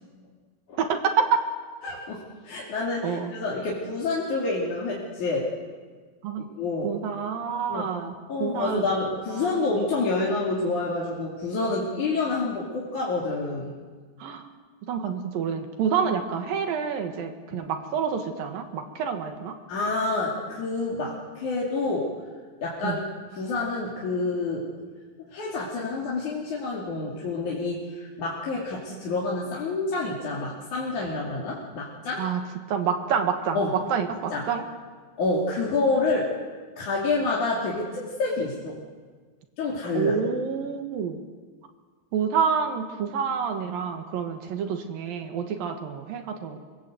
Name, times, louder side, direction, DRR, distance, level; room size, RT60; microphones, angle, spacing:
voice 1, 0.8-1.3 3.0-3.3 6.2-6.5 6.8-8.1 8.4-8.8 9.3-9.5 14.2-14.4 14.9-19.6 22.8-23.0 32.2-32.4 32.7-33.6 33.9-34.6 39.9-41.2 42.1-46.6, right 7 dB, 80° right, 5 dB, 3.4 m, -28 dB
voice 2, 1.8-5.5 6.6-6.9 7.7-7.9 8.3-13.7 17.5-17.7 19.7-22.2 22.6-23.0 23.3-24.7 25.3-32.3 33.5-33.8 34.3-34.5 35.2-36.4 36.8-38.8 39.6-40.1, left 3 dB, 60° left, -5 dB, 4.2 m, -28 dB
25.5 x 22.5 x 8.0 m, 1.5 s
omnidirectional pair, 4.1 m